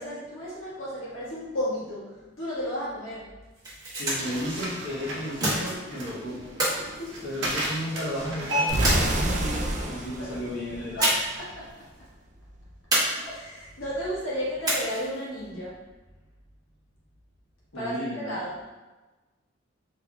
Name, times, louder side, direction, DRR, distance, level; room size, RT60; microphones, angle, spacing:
voice 1, 0.0-3.3 6.8-7.1 10.2-10.3 11.0-11.7 13.2-15.8 17.7-18.6, equal, 80° left, -7 dB, 1.4 m, -33 dB
sound 1, 3.4-4.4 5.4-6.0 6.6-7.8 8.8-9.6 11.0-11.5 11.7-11.8 12.9-13.6 14.6-15.2, right 1 dB, 20° right, 1.1 m, -28 dB
voice 2, 3.9-6.4 7.2-11.1 17.7-18.3, equal, 60° left, -6 dB, 1.2 m, -34 dB
sound 2, 4.0-9.2, equal, 65° right, 0.8 m, -33 dB
sound 3, 8.7-11.5, right 1 dB, 40° right, 0.4 m, -28 dB
3.8 x 3.1 x 2.3 m, 1.2 s
head